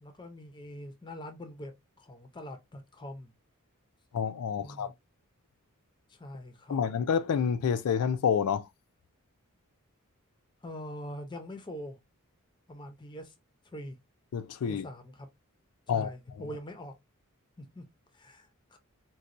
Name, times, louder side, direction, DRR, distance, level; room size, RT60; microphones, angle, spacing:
voice 1, 0.0-3.3 4.6-5.0 6.1-6.8 10.6-12.0 12.7-13.3 13.6-14.0 14.7-15.3 15.9-16.9 17.6-17.8 18.1-18.8, equal, 20° left, 0.6 m, -43 dB
voice 2, 4.1-4.9 6.7-8.7 14.3-14.9 15.9-16.5, left 7 dB, 85° left, 0.4 m, -28 dB
4.1 x 2.2 x 2.4 m
head